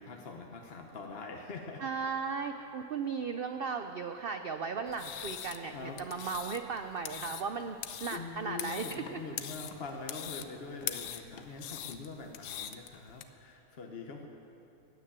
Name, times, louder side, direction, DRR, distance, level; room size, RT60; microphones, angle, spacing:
voice 1, 0.0-1.8 5.7-6.0 8.1-14.3, left 4 dB, 45° left, 2 dB, 1.0 m, -43 dB
voice 2, 1.8-9.2 11.5-11.6, right 5 dB, 85° right, 7 dB, 0.5 m, -36 dB
sound 1, 4.9-13.2, left 10 dB, 85° left, 1.3 m, -42 dB
14.5 x 9.4 x 8.7 m, 2.9 s
omnidirectional pair, 1.7 m